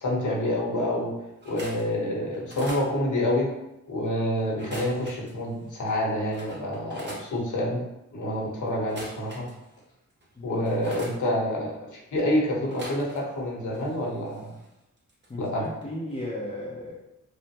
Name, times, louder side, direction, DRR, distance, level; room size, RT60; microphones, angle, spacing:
voice 1, 0.0-1.1 1.4-3.5 3.9-7.8 8.1-9.4 10.4-14.5 15.4-15.6, left 1 dB, 70° left, -3 dB, 0.9 m, -27 dB
sound 1, 1.3-1.9 2.3-2.9 4.5-5.3 5.9-6.0 6.3-7.3 8.8-9.8 10.2-11.2 12.6-13.4 13.7-15.3 15.6-15.8 16.1-16.2, right 1 dB, 35° right, 0.8 m, -43 dB
voice 2, 15.3-16.9, left 1 dB, 20° left, -6 dB, 0.5 m, -35 dB
3.3 x 2.0 x 2.8 m, 0.93 s
cardioid pair, 85°, 31 cm